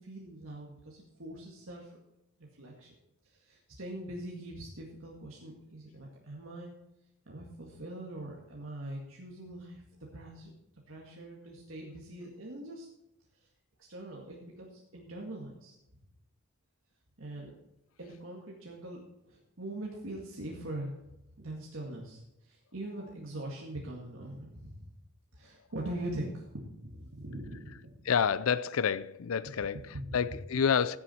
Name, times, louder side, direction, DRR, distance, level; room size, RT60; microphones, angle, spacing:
voice 1, 0.0-1.9 2.4-2.9 3.3-6.7 7.3-9.8 10.1-10.5 10.9-12.9 13.9-15.7 17.2-17.5 18.0-21.0 21.4-24.9 25.3-27.9 29.9-30.2, right 1 dB, 75° right, 2.0 m, -42 dB
voice 2, 28.1-29.8 30.1-31.0, left 7 dB, 90° left, 0.5 m, -28 dB
15.5 x 7.1 x 4.4 m
head